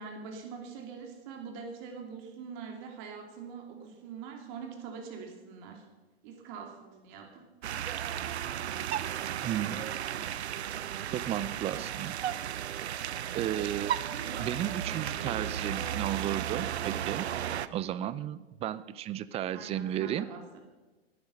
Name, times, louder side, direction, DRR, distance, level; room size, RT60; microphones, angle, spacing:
voice 1, 0.0-5.8 6.2-7.5 14.0-14.5 14.9-15.5 19.5-20.6, right 6 dB, 45° right, 3 dB, 2.8 m, -43 dB
sound 1, 7.6-17.7, right 10 dB, 80° right, 0.8 m, -34 dB
voice 2, 9.4-9.8 11.1-12.2 13.3-13.9 14.4-17.3 17.7-20.3, right 11 dB, 20° right, 17 dB, 0.4 m, -33 dB
16.0 x 9.5 x 6.4 m, 1.2 s
hypercardioid pair, 120°, 32 cm